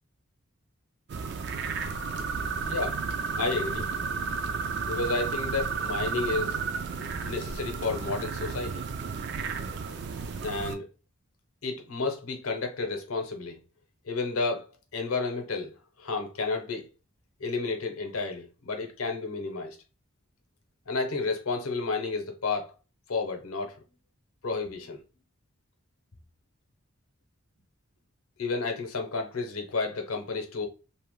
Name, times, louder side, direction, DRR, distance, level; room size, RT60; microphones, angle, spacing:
sound 1, 1.1-10.8, right 5 dB, 50° right, 0.3 m, -32 dB
voice 1, 2.7-3.0 3.3-3.9 4.9-6.6 7.2-8.8 10.4-10.9 11.6-13.6 14.0-16.9 17.4-19.8 20.9-22.7 23.1-23.8 24.4-25.0 28.4-30.7, left 3 dB, 80° left, 0.7 m, -31 dB
2.8 x 2.1 x 3.0 m
head